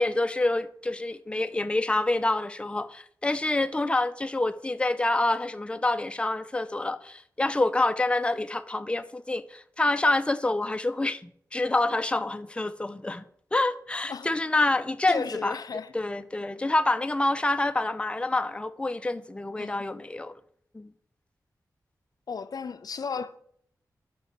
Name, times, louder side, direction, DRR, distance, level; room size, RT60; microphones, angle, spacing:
voice 1, 0.0-13.2 13.5-20.3 20.7-20.9, left 2 dB, 15° left, 0.5 m, -27 dB
voice 2, 15.1-15.9 19.6-19.8 22.3-23.4, left 5 dB, 70° left, 0.5 m, -34 dB
5.8 x 5.4 x 6.4 m
cardioid pair, 55°, 7 cm